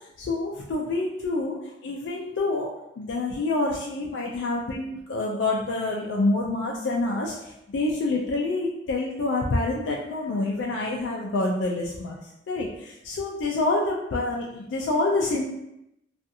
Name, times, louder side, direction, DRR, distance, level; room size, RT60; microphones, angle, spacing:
voice 1, 0.2-1.6 1.8-12.2 12.5-15.5, left 2 dB, 80° left, -2 dB, 0.3 m, -27 dB
2.5 x 2.4 x 2.6 m, 0.85 s
head